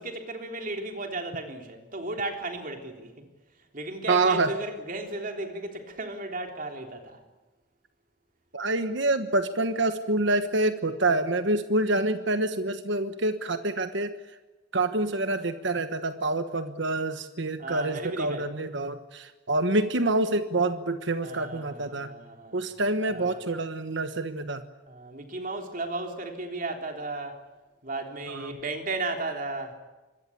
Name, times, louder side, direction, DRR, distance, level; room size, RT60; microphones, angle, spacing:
voice 1, 0.0-3.1 3.7-7.2 17.6-18.5 21.2-22.6 23.1-23.4 24.9-27.4 27.8-29.7, right 2 dB, 40° right, 3.5 m, -35 dB
voice 2, 4.1-4.5 8.5-14.2 14.7-22.1 22.5-24.6 28.3-28.6, right 2 dB, 60° right, 1.2 m, -27 dB
26.5 x 22.0 x 8.6 m
head